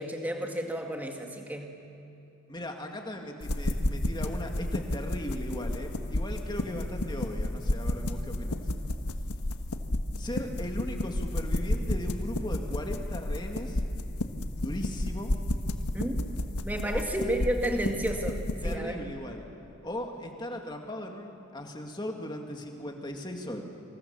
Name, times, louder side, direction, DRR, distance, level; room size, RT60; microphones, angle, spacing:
voice 1, 0.0-1.8 15.9-16.2 16.6-19.1, right 1 dB, 10° right, 2 dB, 2.0 m, -31 dB
voice 2, 2.5-8.6 10.2-13.8 14.6-15.3 16.8-17.0 18.6-19.5 19.8-23.6, left 1 dB, 20° left, 2 dB, 2.2 m, -38 dB
sound 1, 3.4-18.8, left 1 dB, 85° left, 1.4 m, -32 dB
27.0 x 26.5 x 7.2 m, 2.8 s
head